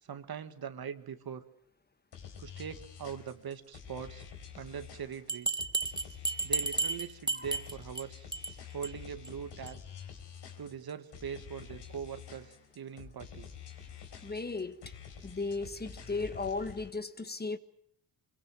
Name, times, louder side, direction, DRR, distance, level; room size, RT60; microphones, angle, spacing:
voice 1, 0.0-1.4 2.4-4.2 4.5-5.7 6.4-8.3 8.7-9.8 10.6-13.5, right 7 dB, 60° right, 1.9 m, -42 dB
sound 1, 2.1-16.9, left 7 dB, 75° left, 4.5 m, -48 dB
Bell, 5.3-8.0 8.3-8.5 8.8-8.9 9.2-9.3 9.7-9.8, right 3 dB, 10° right, 1.3 m, -32 dB
voice 2, 14.2-14.9 15.2-17.6, left 3 dB, 25° left, 1.4 m, -36 dB
25.0 x 22.0 x 7.6 m
cardioid pair, 90°, 42 cm